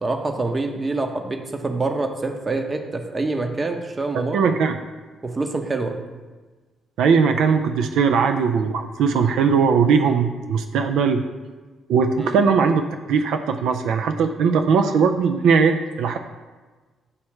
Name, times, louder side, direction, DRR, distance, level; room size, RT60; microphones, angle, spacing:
voice 1, 0.0-4.5 5.2-6.0 12.2-12.4, right 3 dB, 25° right, 5 dB, 0.7 m, -26 dB
voice 2, 4.3-4.8 7.0-11.2 11.9-12.8 13.1-16.2, right 5 dB, 80° right, 6 dB, 0.3 m, -19 dB
7.2 x 3.2 x 4.6 m, 1.3 s
cardioid pair, 90°, 0 cm